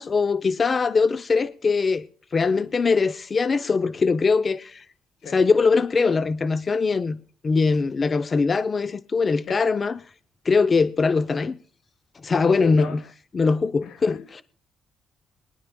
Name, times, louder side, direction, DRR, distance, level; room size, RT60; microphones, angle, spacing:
voice 1, 0.0-2.1 2.3-4.8 5.2-7.2 7.4-10.0 10.4-11.6 12.2-13.0 13.3-14.4, left 4 dB, 35° left, 0.5 m, -21 dB
voice 2, 12.6-13.1 13.8-14.2, left 8 dB, 80° left, 1.3 m, -37 dB
22.5 x 11.0 x 2.2 m
cardioid pair, 90°, 0 cm